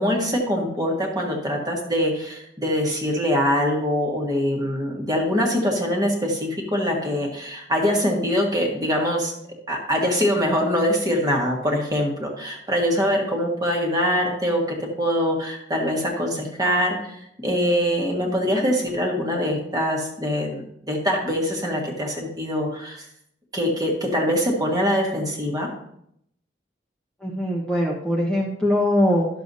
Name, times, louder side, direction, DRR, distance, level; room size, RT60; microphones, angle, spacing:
voice 1, 0.0-9.3 9.7-23.1 23.5-25.7, equal, 20° right, -1 dB, 1.5 m, -23 dB
voice 2, 27.2-29.3, left 1 dB, 5° left, -5 dB, 1.0 m, -21 dB
12.0 x 6.8 x 2.7 m, 0.74 s
head